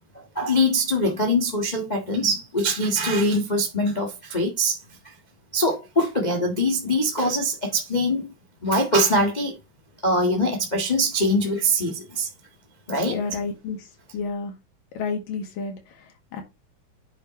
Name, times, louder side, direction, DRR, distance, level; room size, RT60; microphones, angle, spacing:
voice 1, 0.3-4.8 5.5-8.3 8.6-9.6 10.0-12.3 12.9-13.2, equal, 55° left, 0.4 m, -23 dB
voice 2, 13.1-14.5 14.9-16.4, left 4 dB, 80° left, 3.7 m, -31 dB
9.2 x 6.7 x 3.1 m
omnidirectional pair, 3.9 m